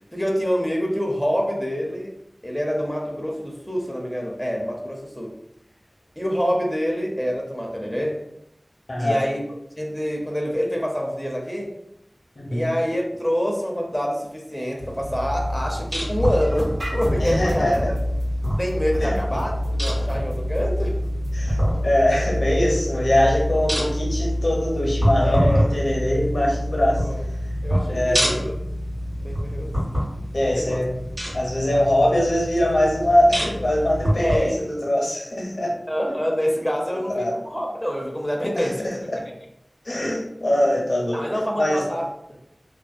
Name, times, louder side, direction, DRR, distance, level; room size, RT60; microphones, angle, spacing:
voice 1, 0.1-2.1 2.4-5.3 6.2-8.2 9.0-9.4 9.8-11.7 12.5-17.8 18.6-21.0 25.2-25.7 27.0-27.2 27.6-28.5 29.2-29.7 30.5-30.8 34.2-34.7 35.9-38.9 41.1-42.4, equal, 5° left, 0 dB, 0.5 m, -26 dB
voice 2, 8.9-9.2 12.4-12.7 17.2-17.8 19.0-19.2 21.3-27.1 27.9-28.3 30.3-30.9 31.3-35.8 36.9-37.4 38.6-39.3 39.8-41.2 41.6-41.9, left 1 dB, 80° left, -2 dB, 0.6 m, -22 dB
sound 1, 14.8-34.4, equal, 90° right, 1.4 m, -26 dB
sound 2, 16.4-23.2, equal, 40° right, 0.6 m, -33 dB
2.4 x 2.1 x 2.4 m, 0.79 s
wide cardioid pair, 45°, 0 cm